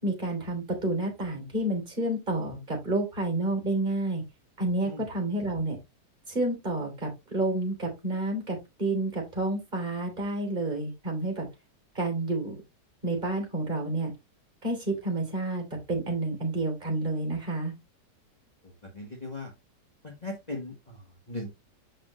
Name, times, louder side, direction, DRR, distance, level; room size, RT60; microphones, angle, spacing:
voice 1, 0.0-4.2 4.6-5.8 6.3-11.5 11.9-12.6 13.0-14.1 14.6-17.7, right 2 dB, 25° right, 2 dB, 3.2 m, -29 dB
voice 2, 18.6-19.5 20.0-21.5, left 2 dB, 25° left, 0 dB, 1.3 m, -39 dB
6.6 x 5.5 x 3.1 m, 0.22 s
omnidirectional pair, 1.9 m